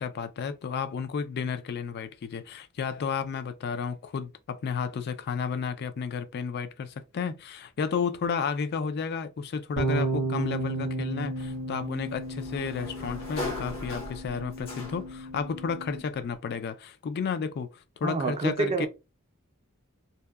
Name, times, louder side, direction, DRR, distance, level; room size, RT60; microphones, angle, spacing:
voice 1, 0.0-18.9, left 6 dB, 50° left, 0.3 m, -32 dB
sound 1, 9.8-16.0, right 2 dB, 85° right, 0.5 m, -33 dB
Sliding door, 11.4-15.3, left 2 dB, 70° left, 0.9 m, -39 dB
voice 2, 18.0-18.9, right 4 dB, 30° right, 0.4 m, -27 dB
2.7 x 2.2 x 2.2 m
head